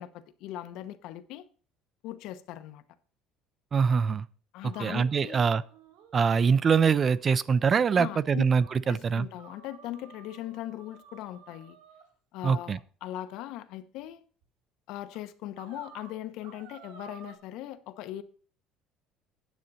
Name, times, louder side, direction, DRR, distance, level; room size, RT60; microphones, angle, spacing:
voice 1, 0.0-1.4 2.0-2.8 4.5-5.4 7.9-8.4 8.8-11.8 12.3-14.2 14.9-18.2, left 13 dB, 65° left, 0.9 m, -39 dB
voice 2, 3.7-4.2 4.8-5.6 6.1-9.3 12.4-12.8, right 6 dB, 25° right, 0.3 m, -24 dB
sound 1, 4.6-7.6 8.0-8.1 8.6-8.8 9.4-12.1 13.1-13.6 14.4-14.5 15.1-15.2 15.6-17.4, right 7 dB, 85° right, 2.4 m, -54 dB
9.4 x 8.7 x 4.1 m
cardioid pair, 165°, 0 cm